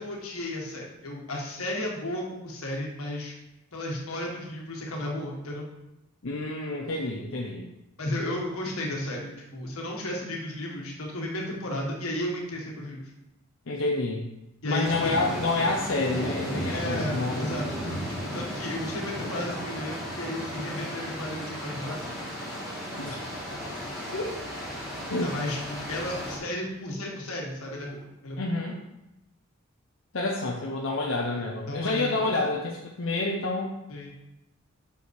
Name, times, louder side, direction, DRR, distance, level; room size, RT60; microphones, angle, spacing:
voice 1, 0.0-3.3 3.7-5.7 8.0-13.1 14.6-15.1 16.7-22.0 23.6-23.8 25.2-28.4 31.2-32.4 33.9-34.1, left 1 dB, 85° left, -1 dB, 1.7 m, -34 dB
voice 2, 6.2-7.6 13.7-14.3 14.6-17.5 23.0-23.2 24.1-24.3 25.1-25.3 28.4-28.8 30.1-33.8, left 2 dB, 65° left, -1 dB, 0.8 m, -28 dB
sound 1, 14.8-26.4, equal, ahead, 2.0 m, -35 dB
6.3 x 5.6 x 4.8 m, 0.92 s
head